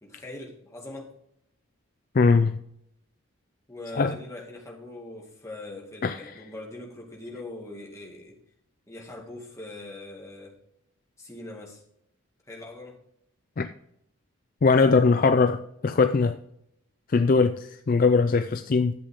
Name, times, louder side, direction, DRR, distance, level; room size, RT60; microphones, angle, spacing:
voice 1, 0.0-1.1 3.7-8.4 8.9-10.6 11.2-11.8 12.5-13.0, left 2 dB, 15° left, 2.2 m, -41 dB
voice 2, 2.1-2.6 4.0-4.2 6.0-6.2 13.6-13.7 14.6-16.4 17.1-18.9, left 4 dB, 40° left, 0.4 m, -21 dB
11.5 x 7.6 x 3.7 m
head